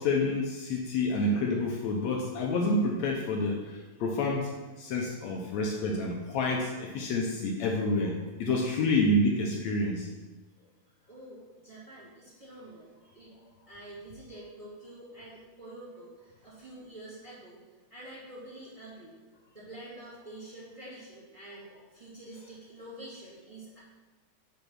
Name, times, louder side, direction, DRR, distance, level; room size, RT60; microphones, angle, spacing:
voice 1, 0.0-4.5 4.8-10.1, left 2 dB, 75° left, 0 dB, 1.9 m, -28 dB
voice 2, 11.0-13.3 13.7-17.6 17.9-19.1 19.5-23.8, right 1 dB, 10° right, -8 dB, 2.0 m, -47 dB
5.3 x 5.3 x 6.1 m, 1.2 s
omnidirectional pair, 3.4 m